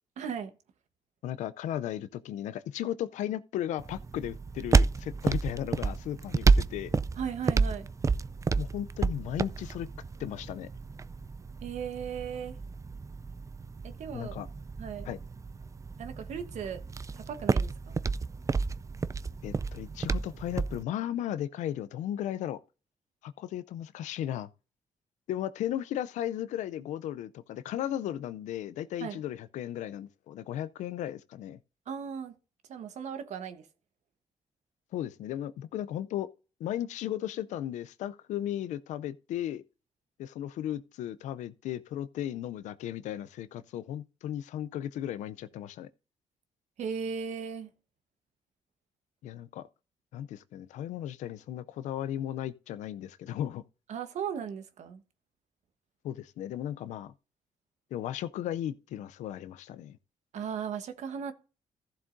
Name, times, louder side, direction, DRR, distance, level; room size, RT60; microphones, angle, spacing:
voice 1, 0.2-0.5 7.2-7.9 11.6-12.5 13.8-14.4 14.8-15.1 16.0-16.8 17.1-18.0 29.0-29.2 31.9-32.4 32.7-33.7 46.8-47.7 53.9-55.0 60.3-61.3, right 7 dB, 75° right, 1.2 m, -37 dB
voice 2, 1.2-6.9 8.6-9.9 10.2-10.7 14.1-14.5 15.1-15.2 19.4-22.6 23.2-24.5 25.3-31.6 34.9-36.3 36.6-39.6 40.2-45.9 49.2-49.7 50.1-53.6 56.0-57.1 57.9-60.0, left 11 dB, 85° left, 0.5 m, -35 dB
sound 1, 3.8-20.8, right 4 dB, 25° right, 0.4 m, -30 dB
14.5 x 7.3 x 2.6 m
cardioid pair, 70°, 12 cm